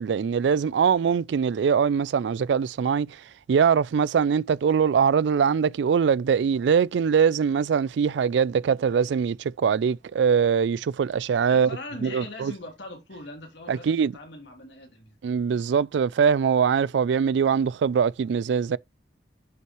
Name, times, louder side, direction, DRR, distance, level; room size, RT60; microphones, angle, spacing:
voice 1, 0.0-11.8 12.0-12.5 13.7-14.1 15.2-18.8, right 6 dB, 75° right, 0.3 m, -22 dB
voice 2, 11.5-15.2, left 2 dB, 75° left, 2.9 m, -41 dB
7.9 x 5.5 x 3.1 m
head